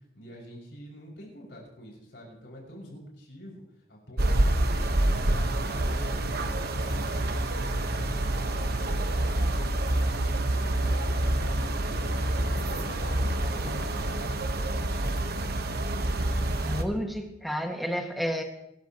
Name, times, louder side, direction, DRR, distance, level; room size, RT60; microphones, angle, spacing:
voice 1, 0.1-3.6 3.9-5.5 5.8-8.2 8.5-10.2 10.6-12.2 12.4-14.4, equal, 70° left, -3 dB, 6.0 m, -46 dB
sound 1, 4.2-16.8, right 1 dB, 60° right, 1.2 m, -27 dB
voice 2, 16.6-18.4, equal, ahead, 2 dB, 1.8 m, -31 dB
24.0 x 13.5 x 3.0 m, 0.82 s
head